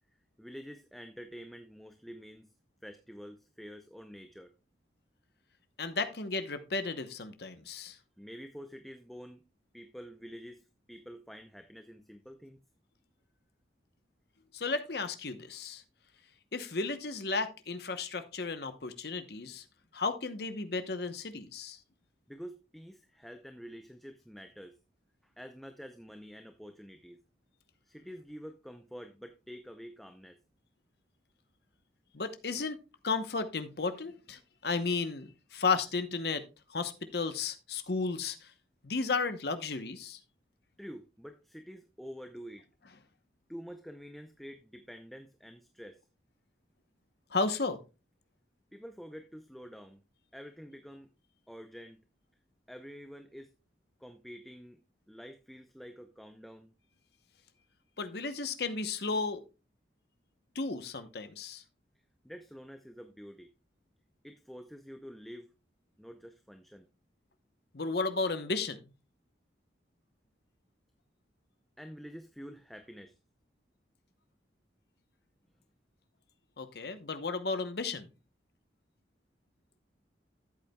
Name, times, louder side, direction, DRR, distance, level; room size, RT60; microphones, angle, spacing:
voice 1, 0.4-2.5 2.8-4.5 8.2-9.4 9.7-12.6 22.3-24.8 25.2-27.2 27.8-30.4 40.8-42.7 43.5-46.0 48.7-50.0 50.3-51.1 51.5-52.0 52.7-53.5 54.0-54.8 55.1-56.7 62.2-63.5 64.2-65.5 66.0-66.9 71.8-73.2, equal, ahead, 6 dB, 0.5 m, -48 dB
voice 2, 5.8-8.0 14.5-15.8 16.5-19.6 19.9-21.8 32.1-32.8 33.0-36.4 36.7-38.5 38.8-40.2 47.3-47.8 58.0-59.4 60.5-61.6 67.7-68.8 76.6-78.1, left 4 dB, 55° left, 10 dB, 0.9 m, -34 dB
13.0 x 8.1 x 2.3 m, 0.29 s
head